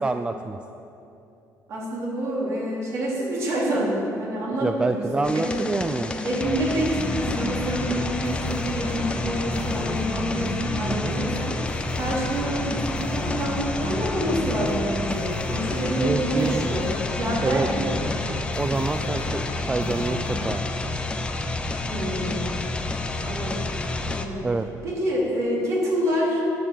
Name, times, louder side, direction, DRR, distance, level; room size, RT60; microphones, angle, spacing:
voice 1, 0.0-0.6 4.6-6.1 10.9-11.2 16.0-16.7 17.4-17.7 18.3-20.6 24.4-24.7, right 3 dB, 15° right, 7 dB, 0.3 m, -27 dB
voice 2, 1.7-5.6 6.2-11.6 11.9-18.0 21.8-22.4 23.2-23.7 24.0-24.5 24.8-26.4, right 1 dB, 50° right, -5 dB, 3.7 m, -27 dB
sound 1, 5.2-24.3, left 2 dB, 15° left, 0.7 m, -29 dB
sound 2, 7.0-20.7, left 3 dB, 40° left, 1.4 m, -35 dB
11.0 x 9.1 x 7.7 m, 2.8 s
cardioid pair, 155°, 7 cm